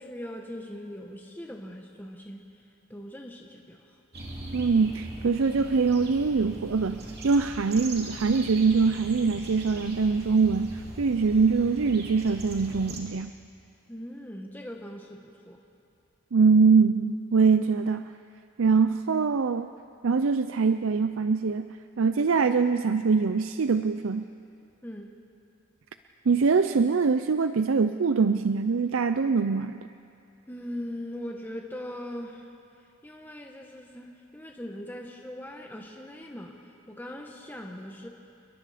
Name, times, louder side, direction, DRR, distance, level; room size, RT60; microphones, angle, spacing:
voice 1, 0.0-2.6 2.9-4.0 13.9-15.6 24.8-25.2 30.5-32.5 33.0-38.1, left 1 dB, 10° left, 1 dB, 1.1 m, -40 dB
sound 1, 4.1-13.0, right 1 dB, 50° right, 2.9 m, -41 dB
voice 2, 4.5-13.3 16.3-18.1 18.6-19.7 20.0-21.7 22.0-24.3 26.3-29.7, right 5 dB, 75° right, 10 dB, 0.5 m, -23 dB
29.0 x 22.0 x 5.0 m, 2.6 s
head